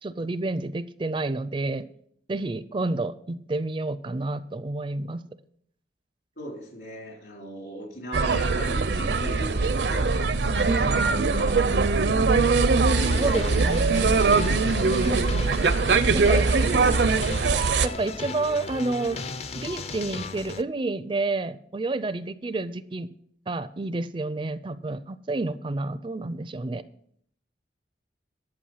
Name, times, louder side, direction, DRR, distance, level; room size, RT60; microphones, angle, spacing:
voice 1, 0.0-1.9 2.3-5.2 10.7-11.1 13.2-14.1 15.0-15.5 16.1-16.5 17.8-19.2 19.5-23.1 23.5-26.8, right 2 dB, 30° right, 14 dB, 0.4 m, -29 dB
voice 2, 6.4-10.3 10.8-12.6 13.0-15.2, equal, 70° left, 0 dB, 4.0 m, -39 dB
sound 1, 8.1-17.9, right 4 dB, 75° right, 0.6 m, -22 dB
sound 2, 12.9-20.6, left 3 dB, 35° left, 0.5 m, -35 dB
11.5 x 7.8 x 5.6 m, 0.66 s
head